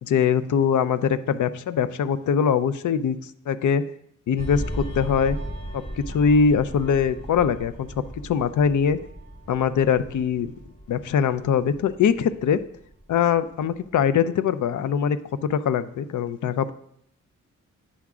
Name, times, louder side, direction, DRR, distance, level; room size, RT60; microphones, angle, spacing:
voice 1, 0.0-3.8 4.3-5.4 5.7-7.9 8.2-9.0 9.5-10.5 10.9-12.6 13.1-16.7, left 7 dB, 70° left, 12 dB, 0.5 m, -22 dB
sound 1, 4.4-13.4 13.8-14.0, right 1 dB, 20° left, 2.0 m, -37 dB
8.6 x 3.6 x 6.0 m, 0.73 s
cardioid pair, 95°, 32 cm